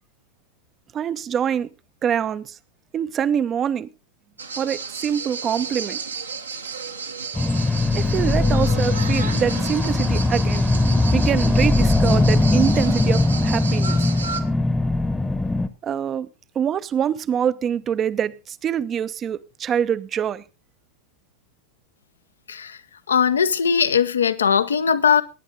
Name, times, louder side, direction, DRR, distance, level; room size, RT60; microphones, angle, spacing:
voice 1, 0.9-1.7 2.0-2.6 2.9-3.9 4.6-6.0 7.9-10.7 11.1-14.1 15.8-16.3 16.5-20.4, right 8 dB, 25° right, 0.7 m, -25 dB
sound 1, 4.4-14.4, right 5 dB, 75° right, 1.4 m, -32 dB
sound 2, 7.3-15.7, left 2 dB, 10° left, 1.0 m, -20 dB
voice 2, 23.1-25.2, left 7 dB, 70° left, 0.9 m, -19 dB
18.5 x 10.0 x 3.7 m
figure-of-eight pair, 90°, 0 cm